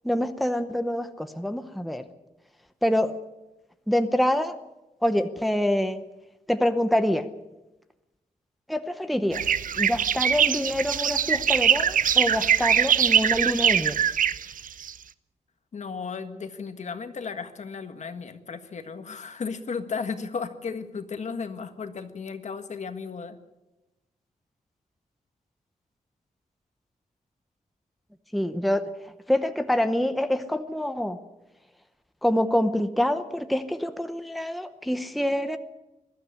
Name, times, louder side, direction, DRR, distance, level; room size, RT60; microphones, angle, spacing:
voice 1, 0.0-2.0 2.8-3.1 3.9-4.5 5.0-6.0 6.5-7.3 8.7-9.4 9.8-14.0 28.3-28.8 29.3-31.2 32.2-35.6, left 1 dB, ahead, 9 dB, 0.8 m, -26 dB
sound 1, 9.3-14.9, right 8 dB, 75° right, 0.7 m, -22 dB
voice 2, 15.7-23.4, left 5 dB, 55° left, 8 dB, 1.6 m, -35 dB
21.5 x 13.0 x 9.8 m, 1.0 s
wide cardioid pair, 170°, 14 cm